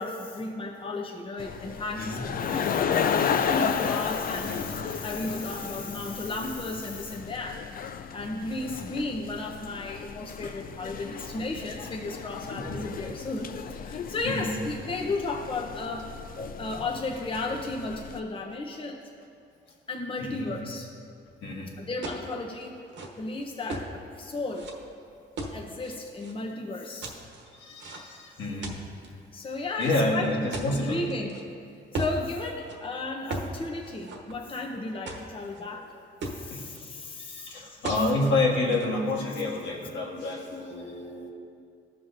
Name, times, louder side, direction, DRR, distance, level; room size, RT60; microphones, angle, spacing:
voice 1, 0.0-7.6 8.1-16.1 16.6-19.0 19.9-20.9 21.8-22.8 23.2-24.7 25.5-27.1 29.3-30.3 30.7-31.3 31.9-35.9 36.3-37.8, left 2 dB, 25° left, 0 dB, 0.8 m, -34 dB
sound 1, 1.4-18.2, left 7 dB, 45° left, 0.4 m, -33 dB
voice 2, 4.5-4.8 8.7-8.8 11.4-11.5 12.5-12.8 14.2-14.5 16.4-16.6 20.2-20.5 21.4-21.7 27.5-28.8 29.8-31.0 36.5-36.7 37.2-41.3, left 2 dB, 70° left, -2 dB, 1.6 m, -29 dB
sound 2, 22.0-22.3 22.8-23.9 24.5-24.7 25.4-26.3 27.0-28.2 28.6-29.1 29.8-31.4 31.9-32.2 32.6-32.8 33.3-33.5 33.8-34.6 35.1-35.6 35.9-36.0 36.2-36.8 37.8-38.1 38.4-38.9, right 2 dB, 65° right, 1.2 m, -36 dB
15.0 x 5.7 x 2.6 m, 2.4 s
cardioid pair, 90°, 20 cm